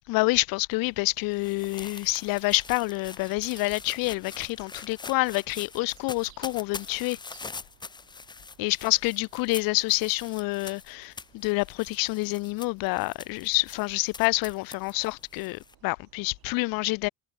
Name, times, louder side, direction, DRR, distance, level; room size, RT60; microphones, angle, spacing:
voice 1, 0.1-7.2 8.6-17.1, left 24 dB, 65° left, 0.5 m, -27 dB
sound 1, 0.7-15.7, left 4 dB, 10° left, 0.6 m, -44 dB
sound 2, 0.7-16.6, right 18 dB, 70° right, 5.8 m, -60 dB
cardioid pair, 160°, 38 cm